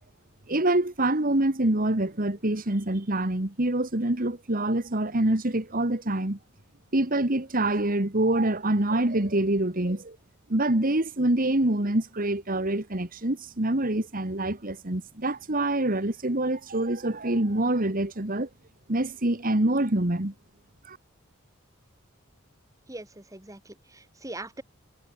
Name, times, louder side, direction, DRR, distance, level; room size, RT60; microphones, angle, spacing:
voice 1, 0.5-6.4 6.9-10.2 10.5-18.5 18.9-20.3 20.9-21.0, right 1 dB, 40° right, 2.0 m, -25 dB
voice 2, 22.9-24.6, right 2 dB, 15° right, 2.2 m, -41 dB
head